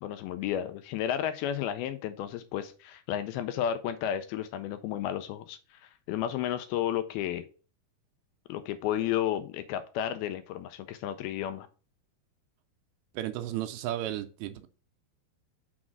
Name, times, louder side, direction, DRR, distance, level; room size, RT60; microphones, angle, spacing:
voice 1, 0.0-7.5 8.5-11.7, left 10 dB, 80° left, 2.3 m, -32 dB
voice 2, 13.2-14.7, right 13 dB, 80° right, 2.3 m, -34 dB
6.1 x 4.0 x 6.0 m
omnidirectional pair, 4.6 m